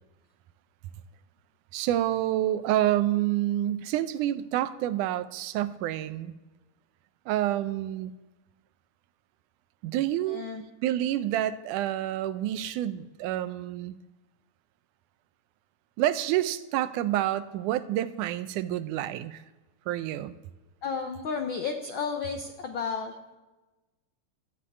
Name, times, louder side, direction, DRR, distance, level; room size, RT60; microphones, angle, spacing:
voice 1, 1.7-6.4 7.3-8.1 9.8-10.5 10.8-14.0 16.0-19.4 19.9-20.4, right 13 dB, 90° right, 13 dB, 2.2 m, -28 dB
voice 2, 10.3-10.6 20.8-23.4, left 5 dB, 75° left, 5 dB, 1.1 m, -33 dB
13.5 x 8.3 x 8.5 m, 1.1 s
omnidirectional pair, 3.5 m